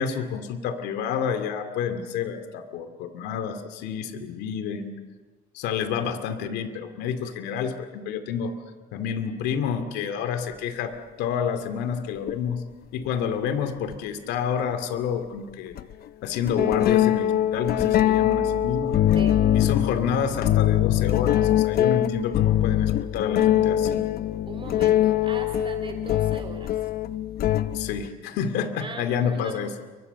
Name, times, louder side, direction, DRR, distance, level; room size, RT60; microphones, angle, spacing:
voice 1, 0.0-4.9 5.5-8.5 8.9-12.6 12.9-15.8 16.2-19.0 19.5-24.0 27.7-29.7, left 7 dB, 90° left, 8 dB, 2.4 m, -29 dB
sound 1, 12.3-12.4 13.9-14.0 15.8-15.9 16.5-28.1, left 12 dB, 65° left, 0.9 m, -22 dB
voice 2, 24.5-26.9 28.8-29.7, right 4 dB, 30° right, 6 dB, 3.9 m, -40 dB
29.5 x 24.5 x 6.9 m, 1.3 s
cardioid pair, 110°, 17 cm